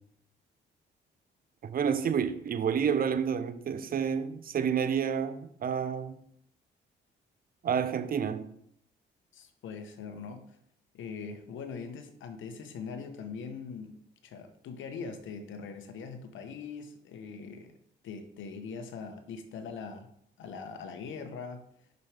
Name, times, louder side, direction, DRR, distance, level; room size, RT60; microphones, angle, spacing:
voice 1, 1.6-6.2 7.6-8.5, right 7 dB, 45° right, 0.7 m, -29 dB
voice 2, 9.3-10.5 10.9-13.9 14.2-17.7 18.0-20.1 20.4-21.6, left 5 dB, 75° left, 1.0 m, -41 dB
6.7 x 6.0 x 3.4 m
cardioid pair, 90°, 20 cm